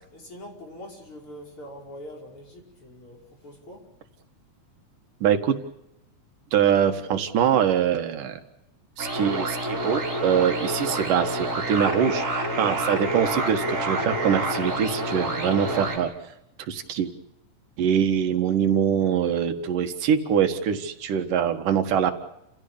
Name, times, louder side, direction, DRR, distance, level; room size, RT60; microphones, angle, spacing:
voice 1, 0.0-3.8, left 1 dB, 40° left, 0 dB, 6.2 m, -43 dB
voice 2, 5.2-5.6 6.5-8.4 9.0-16.1 16.7-17.1 17.8-22.1, right 8 dB, 85° right, 7 dB, 3.3 m, -23 dB
sound 1, 9.0-16.0, right 1 dB, 20° right, 6.2 m, -28 dB
29.5 x 16.0 x 8.7 m, 0.84 s
omnidirectional pair, 3.7 m